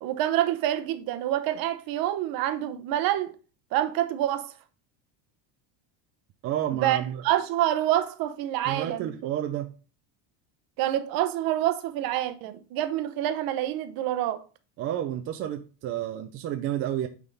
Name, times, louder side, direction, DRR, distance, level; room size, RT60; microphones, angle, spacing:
voice 1, 0.0-3.3 3.7-4.5 6.7-9.1 10.8-14.4, right 13 dB, 50° right, 0.8 m, -27 dB
voice 2, 6.4-7.2 8.7-9.7 14.8-17.1, right 11 dB, 30° right, 0.4 m, -30 dB
9.0 x 3.6 x 3.9 m
cardioid pair, 165°, 47 cm